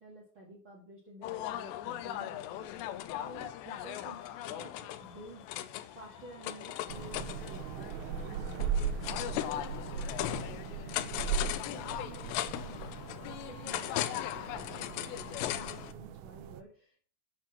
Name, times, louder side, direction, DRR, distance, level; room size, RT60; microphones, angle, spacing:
voice 1, 0.0-2.7 3.2-10.1 10.4-12.8 13.3-17.1, right 2 dB, 60° right, -2 dB, 1.2 m, -52 dB
sound 1, 1.2-15.9, left 13 dB, 90° left, 2.5 m, -38 dB
sound 2, 2.5-15.4, left 6 dB, 65° left, 2.1 m, -55 dB
sound 3, 6.9-16.6, right 7 dB, 85° right, 3.2 m, -38 dB
8.9 x 5.8 x 5.8 m, 0.43 s
omnidirectional pair, 5.6 m